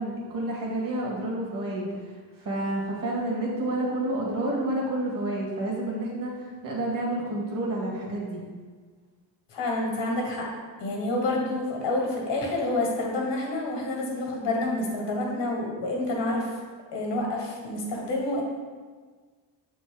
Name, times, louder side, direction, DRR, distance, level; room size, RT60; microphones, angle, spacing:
voice 1, 0.0-1.9 2.4-6.3 6.6-8.4, right 1 dB, 45° right, -3 dB, 1.9 m, -29 dB
voice 2, 9.5-10.4 10.8-16.5 16.9-18.4, left 2 dB, 65° left, -1 dB, 1.8 m, -28 dB
6.7 x 4.3 x 3.8 m, 1.5 s
cardioid pair, 110°, 46 cm